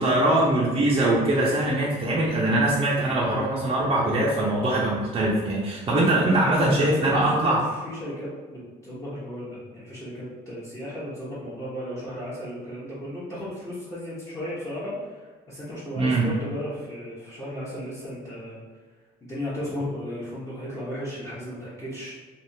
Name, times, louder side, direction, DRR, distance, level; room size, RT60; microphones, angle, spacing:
voice 1, 0.0-7.6 16.0-16.3, right 1 dB, 35° right, -5 dB, 0.6 m, -22 dB
voice 2, 6.0-18.6 19.2-22.2, equal, 15° left, -10 dB, 0.9 m, -34 dB
3.4 x 2.4 x 2.7 m, 1.4 s
cardioid pair, 110°, 17 cm